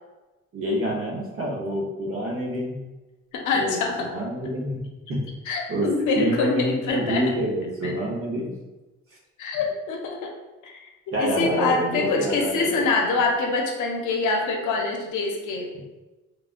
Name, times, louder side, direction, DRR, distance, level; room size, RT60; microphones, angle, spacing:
voice 1, 0.5-2.8 3.5-4.8 5.1-5.2 5.7-5.9 6.1-8.5 11.1-12.7 13.0-13.1, right 1 dB, 45° right, -2 dB, 0.9 m, -27 dB
voice 2, 3.3-4.1 5.5-7.2 9.4-10.3 10.6-15.7, left 3 dB, 80° left, 2 dB, 0.6 m, -25 dB
3.3 x 2.3 x 2.4 m, 1.1 s
cardioid pair, 90°, 30 cm